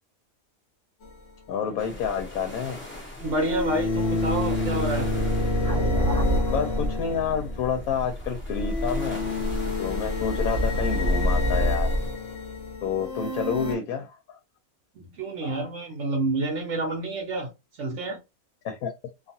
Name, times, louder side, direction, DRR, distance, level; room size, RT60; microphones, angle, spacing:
sound 1, 1.0-1.1 3.2-7.7 8.5-13.8, left 2 dB, 55° left, 0.8 m, -27 dB
voice 1, 1.5-2.8 6.5-9.2 9.8-11.9 12.8-14.4 15.4-15.7 18.6-18.9, left 7 dB, 90° left, 1.1 m, -29 dB
sound 2, 1.8-12.1, equal, 10° left, 0.7 m, -33 dB
voice 2, 3.2-5.1 15.0-17.5 17.8-18.2, right 2 dB, 65° right, 0.9 m, -28 dB
sound 3, 5.6-9.9, right 2 dB, 45° right, 0.4 m, -33 dB
2.5 x 2.4 x 2.7 m
omnidirectional pair, 1.5 m